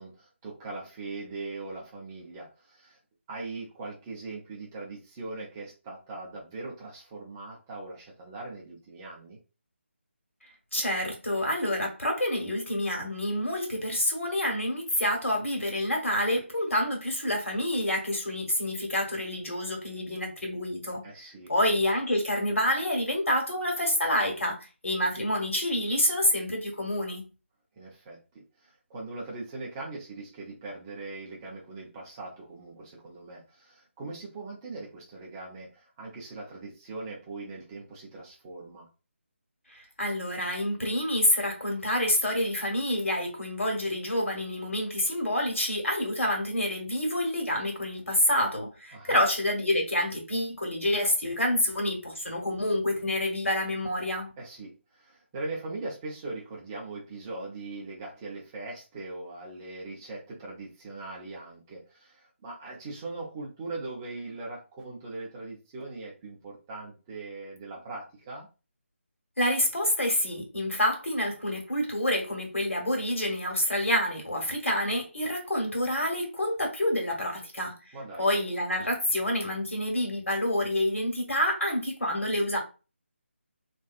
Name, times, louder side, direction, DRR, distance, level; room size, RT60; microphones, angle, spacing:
voice 1, 0.0-3.0 3.3-9.4 21.0-21.5 27.8-38.9 48.9-49.2 54.4-68.5 77.9-78.3, right 3 dB, 15° right, 0.6 m, -40 dB
voice 2, 10.7-21.0 21.5-27.3 39.7-54.3 69.4-77.8 78.2-82.6, left 1 dB, 75° left, 1.4 m, -28 dB
2.6 x 2.4 x 2.4 m
figure-of-eight pair, 155°, 7 cm